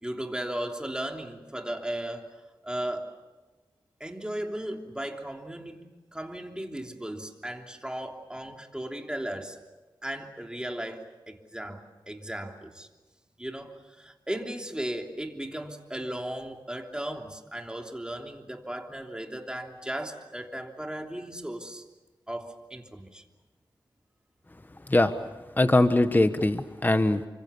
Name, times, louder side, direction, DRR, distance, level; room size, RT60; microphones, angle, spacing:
voice 1, 0.0-2.3 2.6-3.1 4.0-9.6 10.0-12.9 13.4-21.8 22.3-23.2, right 1 dB, 10° right, 3 dB, 3.2 m, -36 dB
voice 2, 25.6-27.3, left 2 dB, 20° left, 10 dB, 1.2 m, -22 dB
29.0 x 25.5 x 7.0 m, 1.2 s
wide cardioid pair, 70°, 9 cm